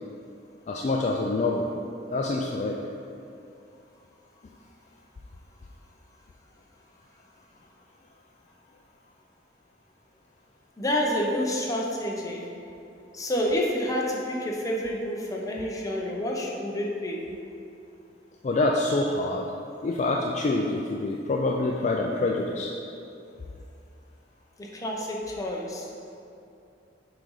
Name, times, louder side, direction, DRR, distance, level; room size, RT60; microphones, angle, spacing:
voice 1, 0.7-1.7 2.1-2.8 18.4-19.5 19.8-22.7, left 2 dB, 40° left, 0 dB, 0.4 m, -26 dB
voice 2, 10.8-12.5 13.1-17.3 24.6-25.9, equal, 20° left, -2 dB, 0.8 m, -29 dB
7.7 x 3.9 x 4.8 m, 2.6 s
head